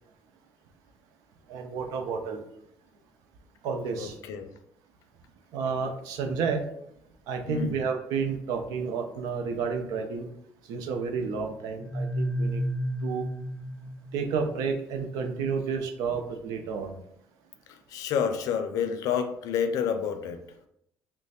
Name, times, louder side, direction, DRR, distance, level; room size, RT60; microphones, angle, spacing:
voice 1, 1.5-2.4 3.6-4.2 5.5-6.6 7.3-10.3 10.7-12.6 13.0-13.2 14.1-17.0, right 5 dB, 85° right, 5 dB, 0.5 m, -31 dB
voice 2, 4.0-4.5 7.5-7.7 17.7-20.4, left 7 dB, 75° left, 8 dB, 0.4 m, -29 dB
sound 1, 11.8-14.6, equal, 15° left, 0.5 m, -31 dB
3.1 x 2.1 x 4.1 m, 0.75 s
supercardioid pair, 85°, 6 cm